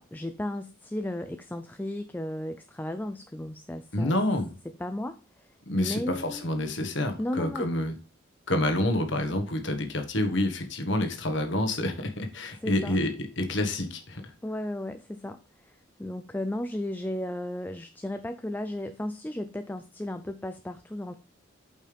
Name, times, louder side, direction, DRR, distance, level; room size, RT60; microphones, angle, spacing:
voice 1, 0.0-4.1 4.8-6.5 7.2-7.7 12.6-13.0 14.4-21.2, left 1 dB, 10° left, 8 dB, 0.3 m, -35 dB
voice 2, 3.9-4.5 5.7-7.9 8.5-14.2, left 1 dB, 60° left, 6 dB, 1.4 m, -28 dB
8.6 x 5.4 x 3.4 m, 0.37 s
head